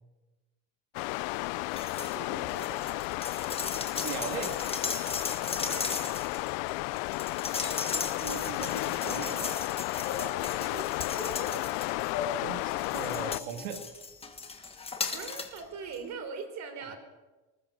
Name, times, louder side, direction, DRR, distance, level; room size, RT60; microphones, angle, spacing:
sound 1, 0.9-13.4, left 23 dB, 80° left, 0.6 m, -33 dB
sound 2, 1.7-2.2 2.5-12.2 12.7-15.6 15.9-16.0, left 4 dB, 15° left, 1.6 m, -37 dB
voice 1, 2.0-3.1 5.6-6.1 10.6-10.9 15.1-17.0, right 5 dB, 40° right, 8 dB, 3.7 m, -42 dB
voice 2, 4.0-4.6 7.9-9.6 12.4-13.8 16.9-17.0, right 8 dB, 90° right, 5 dB, 2.2 m, -39 dB
sound 3, 10.0-10.3 11.1-11.6 12.1-12.3 13.2-13.6, left 6 dB, 50° left, 5.8 m, -37 dB
20.5 x 19.5 x 6.6 m, 1.2 s
cardioid pair, 165°, 40 cm